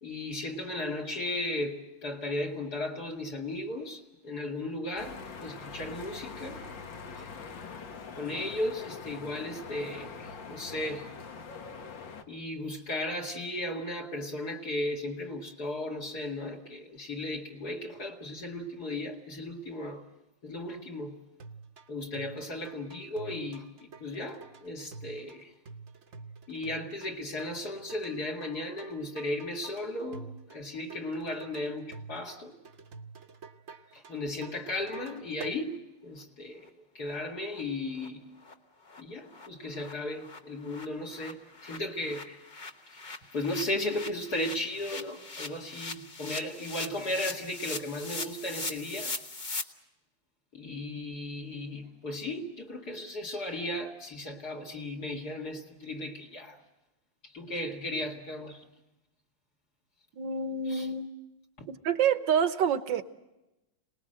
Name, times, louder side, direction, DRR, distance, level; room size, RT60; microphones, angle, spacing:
voice 1, 0.0-6.6 7.1-7.2 8.1-11.1 12.3-20.0 20.4-21.2 21.9-25.5 26.5-32.6 33.9-36.7 36.9-38.3 39.0-42.5 43.3-49.2 50.5-56.6 57.2-58.6 60.7-60.9 61.6-61.7, left 1 dB, 55° left, 2.5 m, -36 dB
sound 1, 5.0-12.2, left 5 dB, 75° left, 2.2 m, -43 dB
sound 2, 21.4-35.6, right 4 dB, 45° right, 1.1 m, -48 dB
sound 3, 36.6-36.7 37.1-37.2 37.5-37.6 38.0-38.1 38.4-38.5 38.8-39.0 39.3-39.5 39.7-49.6, left 3 dB, 30° left, 1.0 m, -41 dB
voice 2, 60.2-61.1 61.7-63.0, right 7 dB, 75° right, 1.7 m, -27 dB
26.5 x 19.5 x 7.8 m
omnidirectional pair, 2.0 m